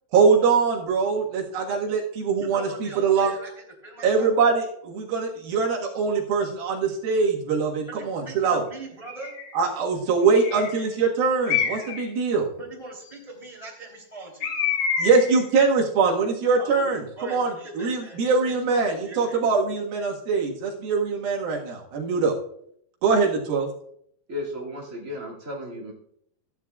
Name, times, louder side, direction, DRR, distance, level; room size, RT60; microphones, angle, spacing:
voice 1, 0.1-3.3 4.0-8.6 9.5-12.5 15.0-22.3 23.0-23.7, right 5 dB, 80° right, -1 dB, 3.4 m, -23 dB
voice 2, 2.4-4.3 7.8-9.4 12.6-14.5 16.6-19.4, right 2 dB, 10° right, -2 dB, 2.6 m, -41 dB
Bird, 9.1-9.5 10.3-10.8 11.5-12.1 14.4-15.4, left 7 dB, 65° left, 1.7 m, -27 dB
voice 3, 24.3-25.9, left 1 dB, 25° right, -4 dB, 2.0 m, -34 dB
14.5 x 10.0 x 2.4 m, 0.71 s
omnidirectional pair, 4.2 m